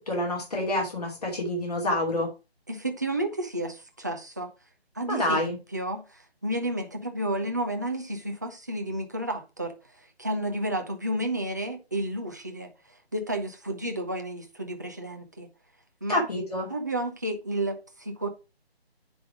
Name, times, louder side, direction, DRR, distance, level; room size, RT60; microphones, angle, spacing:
voice 1, 0.0-2.3 5.1-5.6 16.1-16.7, left 1 dB, 40° left, 2.6 m, -27 dB
voice 2, 2.7-4.5 4.9-15.5 16.0-16.3 16.7-18.3, right 1 dB, 15° right, 0.6 m, -32 dB
9.8 x 3.4 x 6.0 m
figure-of-eight pair, 160°, 32 cm